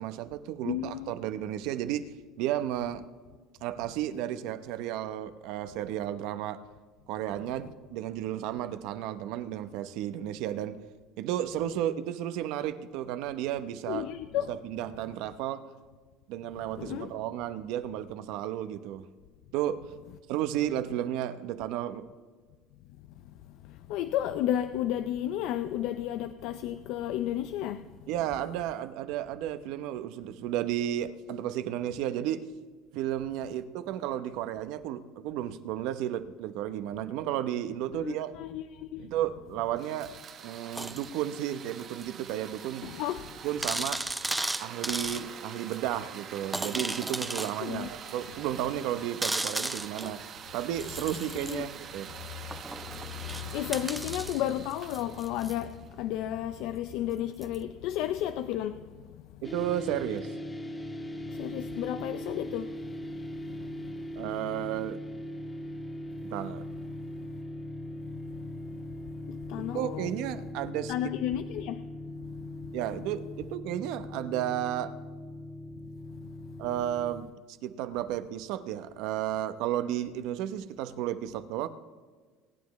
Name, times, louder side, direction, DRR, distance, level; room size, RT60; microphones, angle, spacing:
voice 1, 0.0-2.1 2.4-3.0 3.6-6.6 7.1-10.8 11.2-14.1 14.5-15.6 16.3-19.0 19.5-19.8 20.3-22.0 28.1-32.4 32.9-38.3 39.0-40.1 40.4-42.9 43.4-44.0 44.6-50.2 50.5-52.1 59.4-60.3 64.2-65.0 66.2-66.7 69.6-70.9 72.7-75.0 76.6-81.7, right 12 dB, 70° right, 0.8 m, -33 dB
voice 2, 0.6-1.1 13.9-14.5 16.8-17.1 23.2-28.1 38.0-39.1 42.8-43.4 47.6-47.9 51.3-51.7 52.5-59.4 61.2-64.2 67.0-67.3 67.9-70.1 70.9-71.9 72.2-72.8 75.7-76.7, left 12 dB, 70° left, 0.5 m, -34 dB
sound 1, 39.7-55.9, right 7 dB, 45° right, 1.1 m, -45 dB
sound 2, 40.7-41.1 42.0-42.1 42.6-42.7 42.9-43.0 43.6-45.2 45.7-45.8 46.5-47.5 48.1-48.2 49.2-50.2 50.7-51.6 52.5-55.6 57.4-57.6, right 2 dB, 10° right, 0.6 m, -34 dB
sound 3, 59.4-77.2, left 1 dB, 15° left, 1.5 m, -40 dB
24.0 x 9.4 x 3.2 m
supercardioid pair, 115°, 0 cm